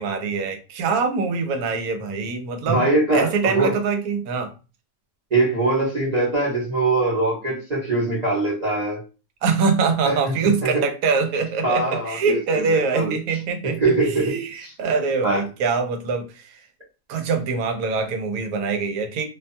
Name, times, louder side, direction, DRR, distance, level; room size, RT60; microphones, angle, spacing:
voice 1, 0.0-4.5 9.4-16.6 17.1-19.3, right 4 dB, 90° right, 1.1 m, -24 dB
voice 2, 2.7-3.7 5.3-9.0 10.0-10.2 10.6-10.7 11.6-13.1 13.8-14.3 14.6-14.7 15.2-15.4, right 2 dB, 35° right, 0.8 m, -22 dB
2.7 x 2.2 x 2.6 m
omnidirectional pair, 1.5 m